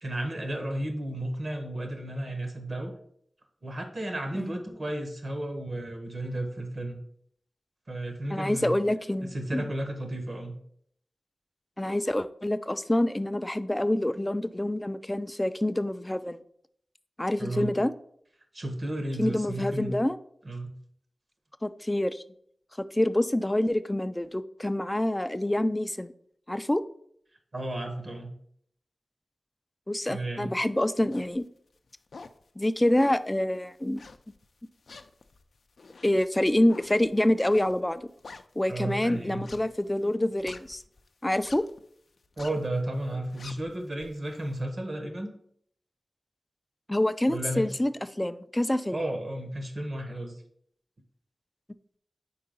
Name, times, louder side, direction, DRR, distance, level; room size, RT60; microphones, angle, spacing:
voice 1, 0.0-2.9 3.6-7.0 7.9-8.8 9.2-10.5 17.4-17.7 18.5-19.9 20.4-20.7 27.5-28.3 30.1-30.5 38.7-39.4 42.4-45.3 47.3-47.6 48.9-50.4, right 1 dB, 50° right, 5 dB, 1.3 m, -33 dB
voice 2, 8.3-9.7 11.8-16.4 17.2-17.9 19.2-20.2 21.6-22.2 22.9-26.1 26.5-26.8 29.9-31.4 32.6-34.0 36.0-38.0 38.6-40.8 41.2-41.6 46.9-47.9 48.2-49.0, left 1 dB, 15° left, 13 dB, 0.3 m, -26 dB
sound 1, 31.1-31.4 31.9-32.4 33.0-33.3 34.0-34.5 34.9-38.9 39.3-41.0 41.3-41.8 42.2-42.7 43.1-44.5, left 4 dB, 80° left, 0.4 m, -47 dB
4.7 x 4.7 x 5.2 m, 0.66 s
wide cardioid pair, 85°, 0 cm